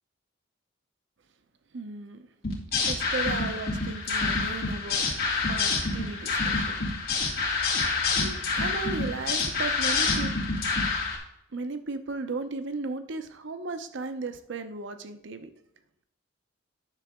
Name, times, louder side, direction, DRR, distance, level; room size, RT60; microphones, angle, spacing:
voice 1, 1.7-2.3 2.8-5.0 5.5-6.8 8.2-10.3 11.5-15.5, right 3 dB, 65° right, 9 dB, 0.7 m, -35 dB
sound 1, 2.4-11.2, left 4 dB, 55° left, 2.2 m, -27 dB
9.8 x 6.8 x 3.7 m, 0.77 s
head